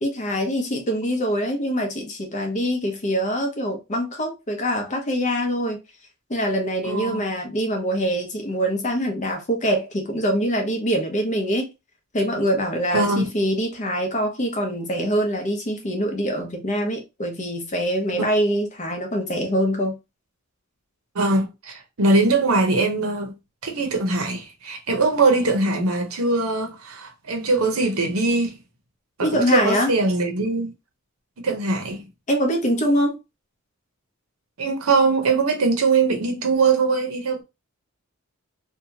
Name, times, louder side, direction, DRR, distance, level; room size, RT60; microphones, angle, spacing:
voice 1, 0.0-5.8 6.3-11.7 12.1-20.0 29.2-29.9 32.3-33.2, equal, 35° left, 0.7 m, -24 dB
voice 2, 6.8-7.2 12.9-13.2 18.1-18.2 21.1-23.3 23.6-28.6 29.2-30.7 31.4-32.0 34.6-37.4, right 3 dB, 75° right, 0.8 m, -21 dB
2.8 x 2.3 x 2.7 m
head